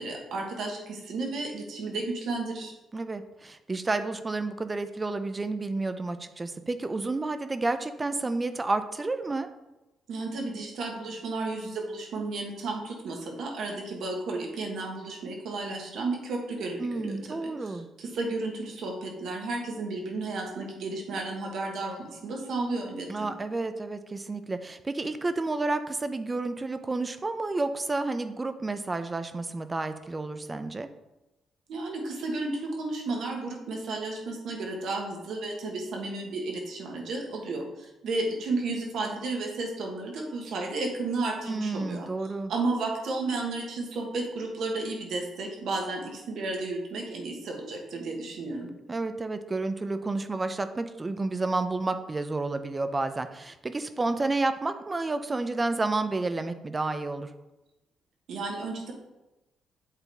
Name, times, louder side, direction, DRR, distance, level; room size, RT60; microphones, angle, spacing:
voice 1, 0.0-2.7 10.1-23.3 31.7-42.1 42.5-48.7 58.3-58.9, right 3 dB, 70° right, 1 dB, 1.5 m, -33 dB
voice 2, 2.9-9.5 16.8-17.9 23.1-30.9 41.5-42.5 48.9-57.3, right 3 dB, 25° right, 10 dB, 0.5 m, -30 dB
8.3 x 3.9 x 3.4 m, 0.99 s
cardioid pair, 90°, 0 cm